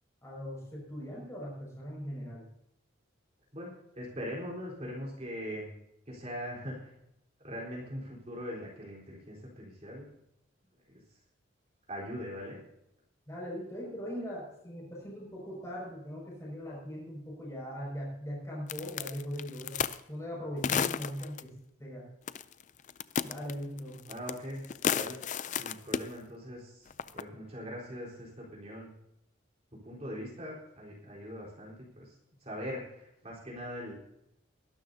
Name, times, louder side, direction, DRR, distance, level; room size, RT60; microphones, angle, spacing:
voice 1, 0.2-2.4 13.3-19.8 20.1-21.5 21.8-22.0 23.2-24.0, equal, 15° left, -4 dB, 5.8 m, -40 dB
voice 2, 3.5-5.7 6.1-6.9 7.4-10.1 11.9-12.6 24.1-24.7 25.0-28.9 29.8-33.9, equal, 35° right, -3 dB, 4.0 m, -41 dB
sound 1, 18.7-20.0 20.6-21.4 22.3-22.6 22.9-24.4 24.6-26.1 26.9-27.2, left 7 dB, 40° left, 0.4 m, -32 dB
22.0 x 12.5 x 2.8 m, 0.80 s
head